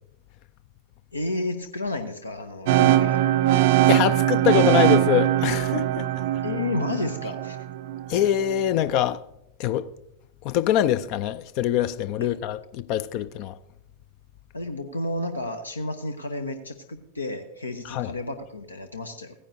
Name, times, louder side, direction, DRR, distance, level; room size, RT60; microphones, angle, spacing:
voice 1, 1.1-3.2 6.4-7.7 12.2-12.3 14.5-19.3, left 2 dB, 80° left, 0.8 m, -31 dB
sound 1, 2.7-8.6, right 14 dB, 50° right, 0.4 m, -21 dB
voice 2, 3.9-6.1 8.1-9.2 9.6-9.9 10.4-13.6 17.8-18.1, left 11 dB, 45° left, 0.4 m, -24 dB
16.0 x 9.8 x 2.7 m
figure-of-eight pair, 90°, 0 cm